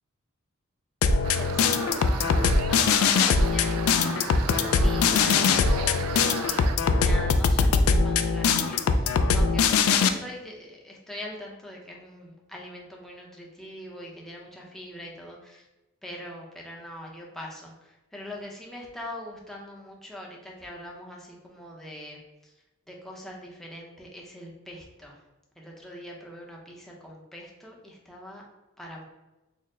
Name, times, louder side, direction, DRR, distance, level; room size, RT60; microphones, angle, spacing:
sound 1, 1.0-10.1, left 5 dB, 70° left, 0.3 m, -22 dB
sound 2, 1.2-6.8, right 7 dB, 80° right, 0.3 m, -37 dB
voice 1, 1.3-15.7 16.0-22.5 22.9-25.2 25.6-28.4 28.8-29.1, left 1 dB, ahead, -2 dB, 0.6 m, -42 dB
4.4 x 2.0 x 3.6 m, 1.0 s
head